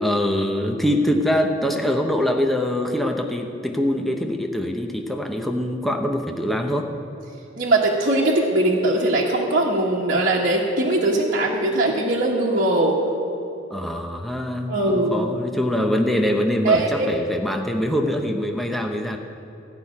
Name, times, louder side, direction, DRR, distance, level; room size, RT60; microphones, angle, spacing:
voice 1, 0.0-6.9 13.7-19.2, equal, ahead, 2 dB, 0.8 m, -23 dB
voice 2, 7.6-13.0 14.7-15.3 16.6-17.1, right 2 dB, 50° right, -7 dB, 1.4 m, -20 dB
14.5 x 5.8 x 9.5 m, 3.0 s
head